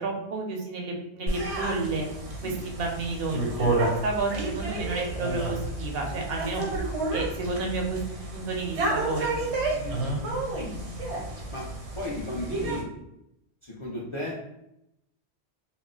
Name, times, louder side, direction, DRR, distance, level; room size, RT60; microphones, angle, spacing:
voice 1, 0.0-2.1 2.4-3.7 4.0-6.6 7.1-9.3, right 3 dB, 65° right, 1 dB, 0.7 m, -31 dB
sound 1, 1.3-12.8, right 2 dB, 85° right, 1.1 m, -30 dB
voice 2, 9.7-10.1 11.5-11.6 11.9-12.9 13.6-14.4, left 1 dB, 45° left, -5 dB, 0.4 m, -35 dB
2.3 x 2.0 x 3.7 m, 0.83 s
omnidirectional pair, 1.1 m